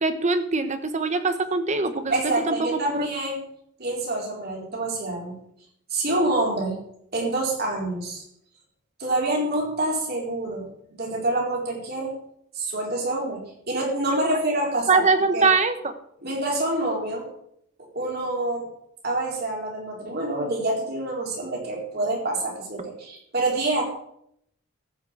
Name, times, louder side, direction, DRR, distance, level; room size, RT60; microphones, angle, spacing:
voice 1, 0.0-3.1 14.9-15.9, right 4 dB, 35° right, 9 dB, 1.0 m, -23 dB
voice 2, 2.1-3.4 3.8-5.4 5.9-6.8 7.1-8.2 9.0-10.6 11.0-12.1 12.5-13.4 13.7-15.0 15.3-15.5 16.2-17.3 17.9-18.7 19.0-23.8, right 2 dB, 55° right, -1 dB, 4.4 m, -26 dB
14.0 x 6.0 x 8.1 m, 0.73 s
head